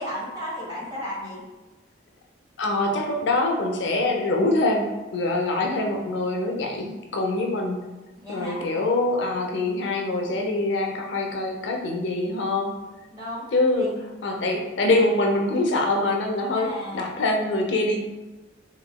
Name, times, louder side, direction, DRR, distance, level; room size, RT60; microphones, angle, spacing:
voice 1, 0.0-1.4 8.2-8.6 13.1-14.2 16.5-17.2, left 1 dB, 25° right, -7 dB, 1.2 m, -35 dB
voice 2, 2.6-7.8 8.3-12.7 13.5-13.9 14.2-18.0, left 2 dB, 75° left, 2 dB, 0.5 m, -24 dB
3.5 x 3.0 x 2.2 m, 1.1 s
head